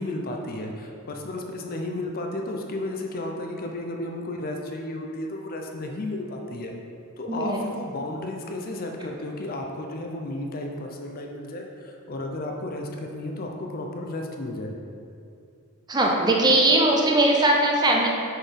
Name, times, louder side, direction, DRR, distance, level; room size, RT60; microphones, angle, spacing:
voice 1, 0.0-6.7 7.2-14.7, left 1 dB, 40° left, 2 dB, 0.6 m, -33 dB
voice 2, 7.3-7.6 15.9-18.1, right 1 dB, 20° right, -1 dB, 0.6 m, -20 dB
6.2 x 4.0 x 5.2 m, 2.5 s
head